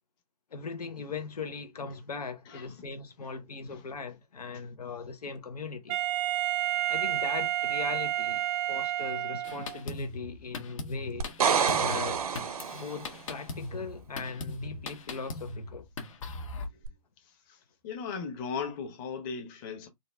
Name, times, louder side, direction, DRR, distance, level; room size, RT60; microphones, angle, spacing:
voice 1, 0.5-6.0 6.9-11.3 11.8-12.2 12.5-15.9, left 5 dB, 80° left, 0.9 m, -39 dB
Wind instrument woodwind instrument, 5.9-9.8, right 14 dB, 20° right, 0.5 m, -30 dB
Drum kit, 9.4-16.7, left 2 dB, 55° left, 1.1 m, -39 dB
sound 1, 11.2-13.1 16.8-16.9, right 7 dB, 70° right, 0.7 m, -27 dB
voice 2, 17.8-19.9, left 5 dB, 35° left, 1.2 m, -37 dB
4.0 x 2.4 x 3.3 m
hypercardioid pair, 130°, 20 cm